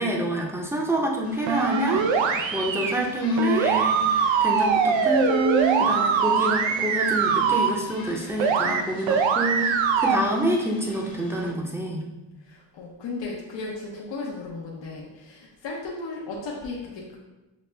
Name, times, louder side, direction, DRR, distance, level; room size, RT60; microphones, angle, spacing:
voice 1, 0.0-12.1, right 1 dB, 5° right, -1 dB, 0.7 m, -27 dB
sound 1, 1.2-11.5, left 2 dB, 45° left, 1.0 m, -44 dB
sound 2, 1.5-2.9 3.4-7.7 8.4-8.8 9.1-10.2, right 6 dB, 70° right, 0.5 m, -22 dB
voice 2, 12.4-17.2, left 3 dB, 65° left, -3 dB, 0.8 m, -35 dB
6.1 x 2.1 x 3.3 m, 1.1 s
cardioid pair, 85°, 48 cm